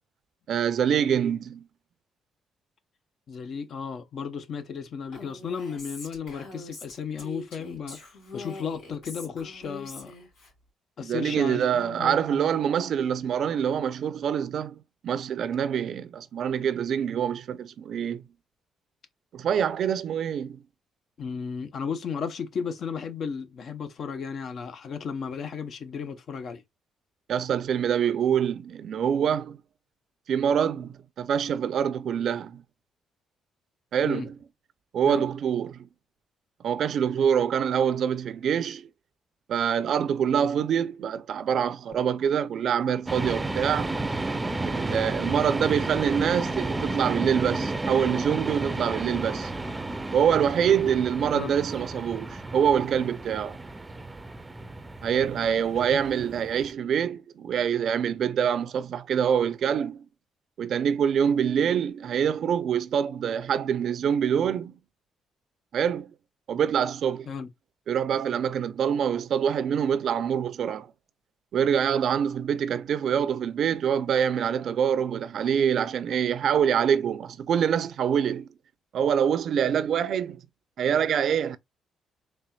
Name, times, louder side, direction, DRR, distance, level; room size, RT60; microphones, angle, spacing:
voice 1, 0.5-1.7 11.0-14.8 15.0-18.2 19.3-20.6 27.3-29.6 30.3-32.6 33.9-34.4 34.9-35.9 36.6-38.9 39.5-43.9 44.6-49.5 50.1-53.6 55.0-60.1 60.6-64.8 65.7-66.1 66.5-67.3 67.9-70.9 71.5-78.5 78.9-80.4 80.8-81.6, right 8 dB, 65° right, 0.5 m, -25 dB
voice 2, 3.3-8.0 8.3-10.1 11.0-12.5 21.2-26.6 34.0-34.3 35.1-35.3 51.3-51.5 55.9-56.0 67.3-67.5, left 6 dB, 60° left, 0.8 m, -34 dB
Female speech woman speaking, 5.1-10.5, left 2 dB, 85° left, 2.9 m, -43 dB
sound 1, 43.0-56.7, right 2 dB, 15° right, 0.5 m, -32 dB
4.3 x 3.3 x 2.2 m
cardioid pair, 90°, 0 cm